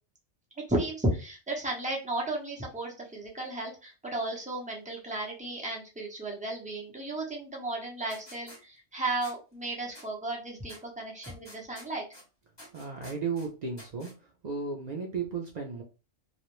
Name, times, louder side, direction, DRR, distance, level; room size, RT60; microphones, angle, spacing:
voice 1, 0.7-12.1, right 2 dB, 10° right, -2 dB, 0.4 m, -34 dB
sound 1, 8.1-8.6 9.2-9.3 9.9-10.1 10.7-10.8 11.2-12.2 12.6-13.5 13.8-14.1, left 1 dB, 25° left, 1.0 m, -49 dB
voice 2, 12.7-14.1 14.4-15.8, right 5 dB, 85° right, 0 dB, 0.3 m, -34 dB
2.4 x 2.0 x 2.9 m, 0.31 s
omnidirectional pair, 1.3 m